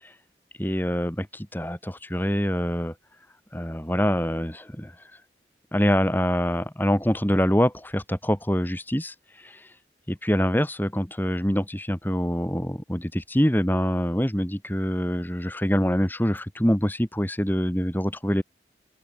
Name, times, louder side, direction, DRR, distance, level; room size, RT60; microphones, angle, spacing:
voice 1, 0.6-2.9 3.5-4.9 5.7-9.1 9.4-9.6 10.1-18.4, equal, 10° left, 2.5 m, -25 dB
open air
head